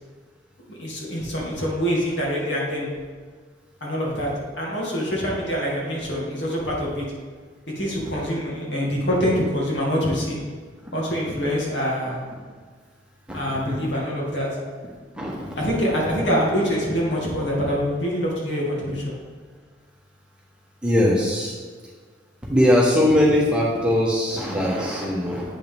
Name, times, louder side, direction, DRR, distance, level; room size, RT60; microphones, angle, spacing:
voice 1, 0.7-2.9 3.8-4.3 4.6-7.1 7.8-10.4 10.9-12.2 13.3-14.5 15.6-19.1, equal, 70° left, -4 dB, 2.0 m, -25 dB
voice 2, 15.1-15.5 20.8-21.5 22.5-25.4, left 1 dB, 5° right, -5 dB, 1.2 m, -20 dB
8.4 x 5.8 x 3.5 m, 1.5 s
head